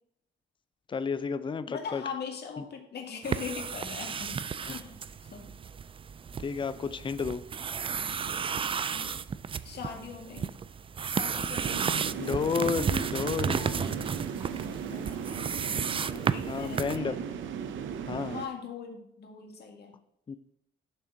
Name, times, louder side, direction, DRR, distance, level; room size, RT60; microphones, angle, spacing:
voice 1, 0.9-2.0 4.7-4.8 6.4-7.4 12.2-13.6 16.5-17.1 18.1-18.4 20.3-20.4, left 5 dB, 25° left, 13 dB, 0.5 m, -31 dB
voice 2, 1.7-5.5 8.3-9.1 9.6-10.5 11.0-12.4 13.5-17.2 18.3-19.9, left 6 dB, 55° left, 3 dB, 1.8 m, -42 dB
sound 1, 3.2-17.0, right 6 dB, 25° right, 0.3 m, -33 dB
sound 2, 11.6-18.5, right 7 dB, 75° right, 0.7 m, -37 dB
11.0 x 3.7 x 5.8 m, 0.75 s
cardioid pair, 90°, 20 cm